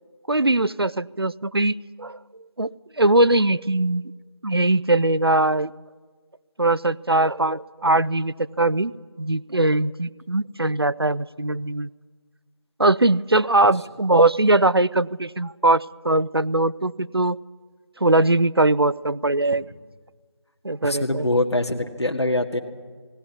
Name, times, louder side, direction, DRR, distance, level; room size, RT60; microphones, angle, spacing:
voice 1, 0.3-2.2 2.6-2.7 3.0-4.1 4.4-5.7 6.6-8.9 9.2-11.9 12.8-17.4 18.0-19.6 20.6-21.3, right 2 dB, 55° right, 19 dB, 0.6 m, -21 dB
voice 2, 20.8-22.6, left 1 dB, 65° left, 3 dB, 1.9 m, -23 dB
18.5 x 18.0 x 9.6 m, 1.5 s
figure-of-eight pair, 180°, 15 cm